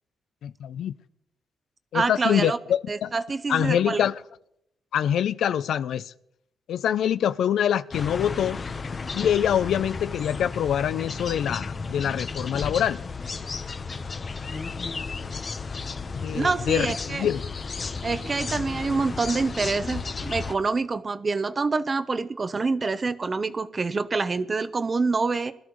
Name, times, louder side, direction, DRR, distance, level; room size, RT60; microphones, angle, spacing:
voice 1, 0.4-0.9 1.9-3.1 3.5-4.2 4.9-6.1 6.7-8.6 9.1-13.0 16.1-17.4, left 9 dB, 85° left, 14 dB, 0.4 m, -25 dB
voice 2, 1.9-2.6 2.9-4.0 16.3-17.3 18.0-25.5, right 4 dB, 35° right, 13 dB, 0.8 m, -26 dB
sound 1, 7.9-20.5, left 4 dB, 40° left, 0.9 m, -33 dB
21.0 x 13.0 x 3.1 m, 0.78 s
cardioid pair, 95°, 0 cm